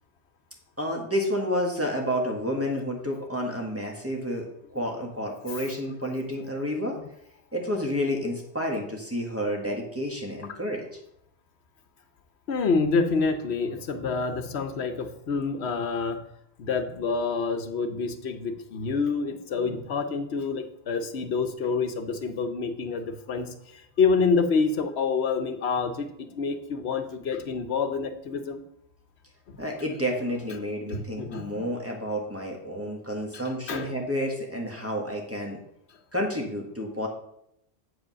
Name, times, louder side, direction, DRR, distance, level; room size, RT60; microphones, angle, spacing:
voice 1, 0.8-4.5 4.7-7.0 7.5-10.8 29.6-35.6 36.1-37.1, equal, 10° right, 0 dB, 1.7 m, -30 dB
voice 2, 12.5-16.2 16.6-28.6 29.5-29.6 30.9-31.7 33.3-34.0, left 4 dB, 75° left, 8 dB, 1.1 m, -27 dB
8.1 x 5.0 x 6.2 m, 0.75 s
omnidirectional pair, 1.1 m